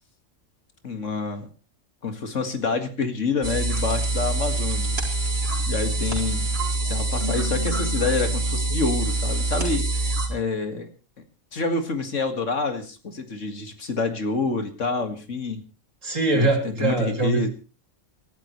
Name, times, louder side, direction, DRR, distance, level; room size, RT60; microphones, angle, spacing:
voice 1, 0.8-1.5 2.0-5.0 5.7-6.5 6.9-10.9 11.5-15.6 16.3-17.5, left 3 dB, 75° left, 7 dB, 2.3 m, -27 dB
sound 1, 3.4-10.3, right 2 dB, 50° right, 4.1 m, -25 dB
Keyboard (musical), 7.2-9.2, left 3 dB, 25° left, 1.1 m, -37 dB
voice 2, 16.0-17.5, right 2 dB, 90° right, 4 dB, 3.6 m, -22 dB
27.0 x 12.0 x 3.2 m, 0.35 s
omnidirectional pair, 1.3 m